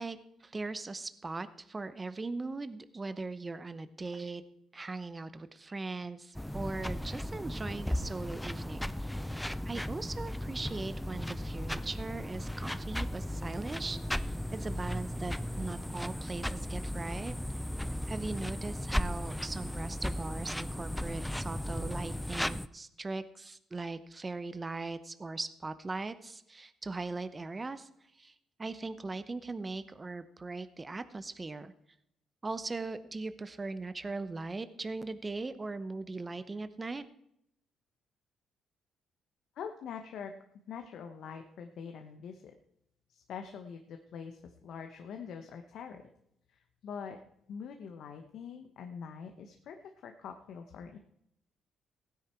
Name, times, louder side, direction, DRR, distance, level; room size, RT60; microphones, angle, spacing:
voice 1, 0.0-4.4 4.7-17.3 17.8-27.9 28.1-31.7 32.4-37.1, right 3 dB, 25° right, 12 dB, 0.8 m, -40 dB
sound 1, 6.4-22.7, left 1 dB, 5° left, 0.5 m, -36 dB
voice 2, 39.6-40.3 40.7-42.5 43.1-46.0 46.5-47.2 47.5-49.8 50.0-51.0, left 7 dB, 75° left, 5 dB, 1.1 m, -44 dB
16.0 x 9.7 x 4.5 m, 0.76 s
cardioid pair, 90°, 0 cm